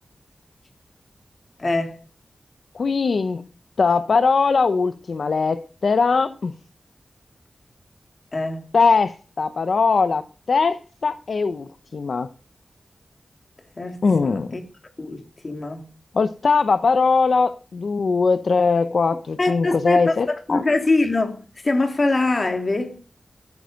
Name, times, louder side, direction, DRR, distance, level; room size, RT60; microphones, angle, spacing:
voice 1, 1.6-2.0 8.3-8.6 13.8-14.6 15.0-15.8 19.4-23.0, left 2 dB, 45° left, 3.0 m, -23 dB
voice 2, 2.7-3.4 3.8-6.5 8.7-10.2 10.5-12.3 14.0-14.5 16.1-20.6, left 4 dB, 75° left, 0.8 m, -20 dB
13.5 x 9.6 x 5.2 m
wide cardioid pair, 85°, 0 cm